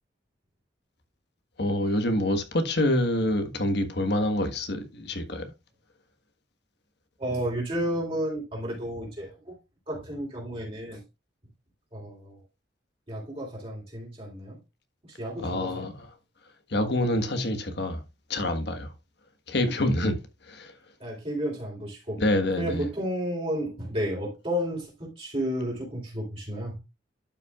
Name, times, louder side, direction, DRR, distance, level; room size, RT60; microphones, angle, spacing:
voice 1, 1.6-5.4 15.4-16.1 16.7-18.0 18.3-18.9 19.5-20.2 20.5-20.7 22.2-22.9, left 1 dB, 60° left, 1.5 m, -26 dB
voice 2, 7.2-9.3 9.9-11.0 11.9-12.4 13.1-14.6 15.2-15.9 21.0-22.2 22.6-26.8, equal, 30° right, 3.5 m, -32 dB
12.0 x 5.8 x 2.4 m
head